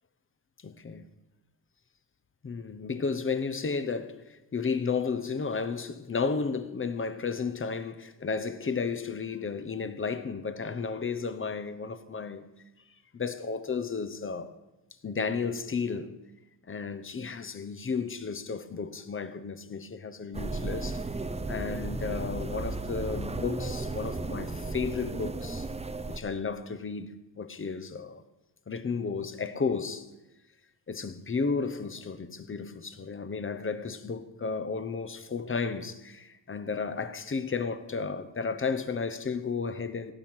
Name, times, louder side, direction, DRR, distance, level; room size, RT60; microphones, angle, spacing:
voice 1, 0.6-1.1 2.4-12.5 13.1-14.5 15.0-16.2 16.7-21.0 21.5-25.7 26.1-28.2 28.7-30.1 30.9-40.1, left 5 dB, 25° left, 0.8 m, -33 dB
sound 1, 20.3-26.2, right 2 dB, 15° right, 0.7 m, -34 dB
16.5 x 5.9 x 8.7 m
cardioid pair, 110°, 47 cm